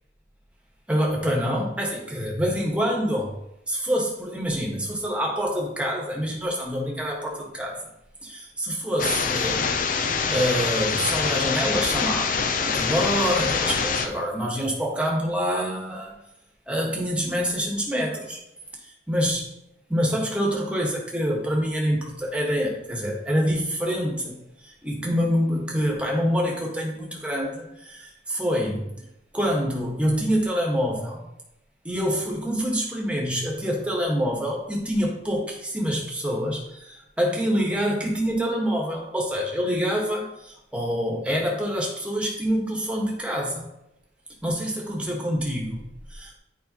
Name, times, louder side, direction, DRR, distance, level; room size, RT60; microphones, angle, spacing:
voice 1, 0.9-3.3 3.7-7.8 8.2-9.8 10.0-16.2 16.7-18.4 19.1-19.5 19.9-29.0 29.3-31.2 31.8-43.7 44.4-46.4, equal, 5° right, -2 dB, 1.4 m, -26 dB
sound 1, 9.0-14.1, left 5 dB, 50° left, 0.5 m, -25 dB
8.6 x 5.0 x 2.9 m, 0.83 s
head